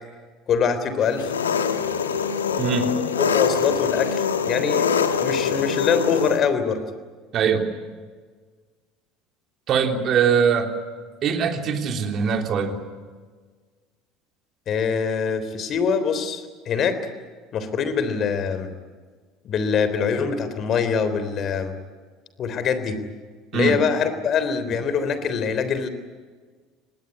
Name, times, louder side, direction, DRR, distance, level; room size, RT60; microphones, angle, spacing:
voice 1, 0.5-1.3 3.2-6.8 14.7-17.0 17.5-18.7 19.4-21.7 22.4-23.0 23.5-25.9, left 6 dB, 45° left, 11 dB, 3.5 m, -24 dB
Engine, 1.1-6.4, left 6 dB, 85° left, 1.4 m, -24 dB
voice 2, 2.6-3.0 7.3-7.7 9.7-10.7 11.2-12.9 23.5-23.8, right 6 dB, 50° right, 5 dB, 3.3 m, -22 dB
26.0 x 19.5 x 9.8 m, 1.5 s
hypercardioid pair, 70°, 0 cm